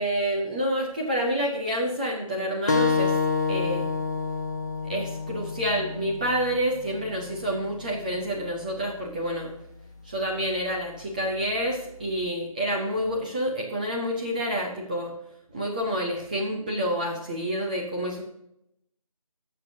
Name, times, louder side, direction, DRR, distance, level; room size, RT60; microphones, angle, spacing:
voice 1, 0.0-3.2 3.5-3.9 4.8-9.5 10.0-15.1 15.5-18.2, equal, 15° right, -2 dB, 0.7 m, -28 dB
sound 1, 2.7-7.8, left 4 dB, 30° left, 0.6 m, -28 dB
14.5 x 6.5 x 2.8 m, 0.79 s
figure-of-eight pair, 155°, 18 cm